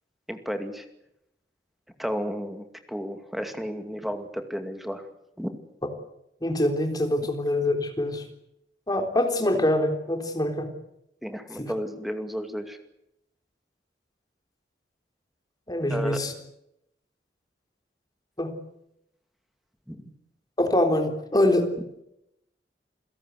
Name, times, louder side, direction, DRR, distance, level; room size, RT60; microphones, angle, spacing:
voice 1, 0.3-0.8 2.0-5.1 5.4-5.5 11.2-12.8 15.9-16.2 19.9-20.1, equal, ahead, 7 dB, 2.4 m, -33 dB
voice 2, 6.4-8.2 8.9-10.7 11.6-11.7 15.7-16.3 18.4-18.6 20.6-21.7, left 1 dB, 20° left, 5 dB, 3.8 m, -24 dB
28.5 x 17.0 x 8.2 m, 0.82 s
head